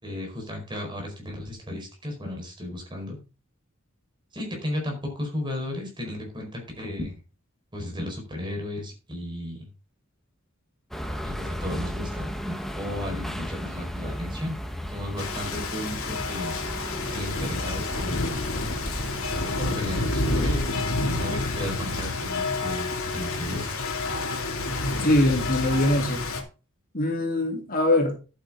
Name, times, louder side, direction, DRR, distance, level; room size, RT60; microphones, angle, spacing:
voice 1, 0.0-3.2 4.3-7.2 7.7-9.7 11.2-14.6 14.9-16.6 17.1-18.4 19.4-23.7, left 1 dB, 20° right, 2 dB, 4.7 m, -34 dB
sound 1, 10.9-20.6, equal, ahead, 1.0 m, -34 dB
Rain, 15.2-26.4, left 2 dB, 80° left, 2.7 m, -29 dB
voice 2, 25.0-26.2 26.9-28.2, left 1 dB, 45° left, 2 dB, 2.9 m, -22 dB
11.5 x 8.9 x 3.7 m, 0.33 s
head